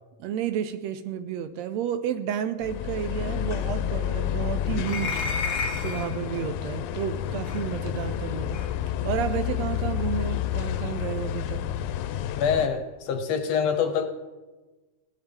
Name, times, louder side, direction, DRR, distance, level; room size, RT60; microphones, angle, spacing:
voice 1, 0.2-5.2 5.8-8.6 9.0-11.7, right 9 dB, 80° right, 10 dB, 1.7 m, -31 dB
sound 1, 2.6-12.7, left 10 dB, 85° left, 1.9 m, -30 dB
sound 2, 4.8-6.2 7.4-7.6 8.5-8.7, left 4 dB, 45° left, 1.6 m, -31 dB
voice 2, 12.4-14.1, left 7 dB, 70° left, 7 dB, 1.7 m, -25 dB
17.5 x 11.0 x 3.6 m, 1.2 s
omnidirectional pair, 3.3 m